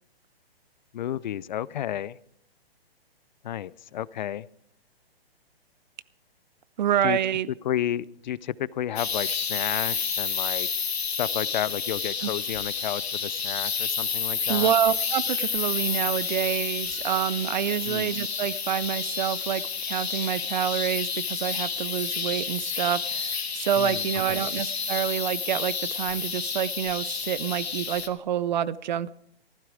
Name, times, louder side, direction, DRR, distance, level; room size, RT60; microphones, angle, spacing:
voice 1, 0.9-2.2 3.4-4.5 7.0-7.2 7.6-10.7 11.2-14.7 17.9-18.2 23.8-24.5, left 11 dB, 45° left, 21 dB, 0.5 m, -32 dB
voice 2, 6.8-7.5 12.2-12.3 14.5-29.1, right 10 dB, 45° right, 19 dB, 0.5 m, -27 dB
sound 1, 9.0-28.1, left 6 dB, 85° left, 1.5 m, -30 dB
15.0 x 12.5 x 4.9 m, 0.73 s
hypercardioid pair, 135°, 31 cm